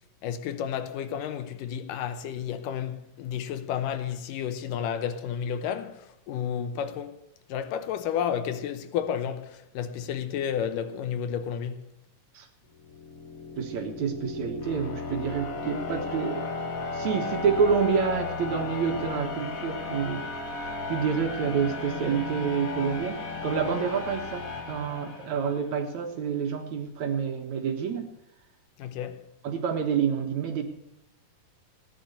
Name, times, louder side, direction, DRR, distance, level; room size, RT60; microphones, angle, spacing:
voice 1, 0.2-7.2 7.5-11.9 28.8-29.2, left 8 dB, 80° left, 2.5 m, -31 dB
sound 1, 12.8-25.7, left 3 dB, 50° left, 1.0 m, -35 dB
voice 2, 13.6-16.6 16.9-20.2 20.6-28.1 29.4-30.6, right 6 dB, 60° right, 2.6 m, -28 dB
16.0 x 10.5 x 6.8 m
omnidirectional pair, 3.9 m